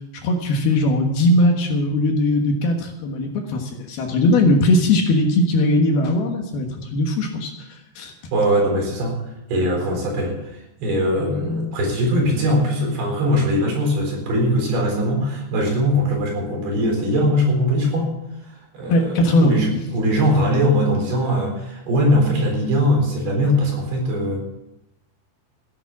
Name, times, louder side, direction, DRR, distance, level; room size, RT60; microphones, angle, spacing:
voice 1, 0.2-8.1 18.9-19.5, left 1 dB, 65° left, 3 dB, 3.1 m, -19 dB
voice 2, 8.3-9.2 9.5-18.1 18.4-24.4, equal, 60° right, 0 dB, 6.0 m, -21 dB
15.0 x 11.0 x 6.0 m, 0.88 s
omnidirectional pair, 5.2 m